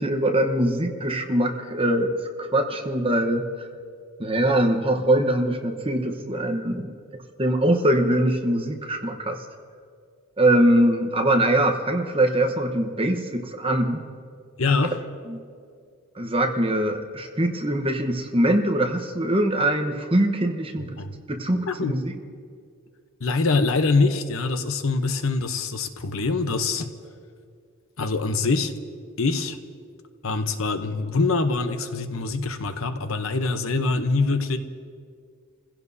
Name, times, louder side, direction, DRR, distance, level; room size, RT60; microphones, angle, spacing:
voice 1, 0.0-2.1 2.4-3.7 4.2-6.9 7.4-9.4 10.4-14.0 15.3-15.4 16.1-21.0 21.3-22.1, right 1 dB, 25° right, 3 dB, 1.0 m, -22 dB
voice 2, 14.6-15.0 21.0-21.2 21.7-21.9 23.2-26.9 28.0-28.7 29.2-29.6 30.2-34.6, left 3 dB, 70° left, 8 dB, 0.9 m, -24 dB
29.5 x 16.0 x 2.7 m, 2.2 s
head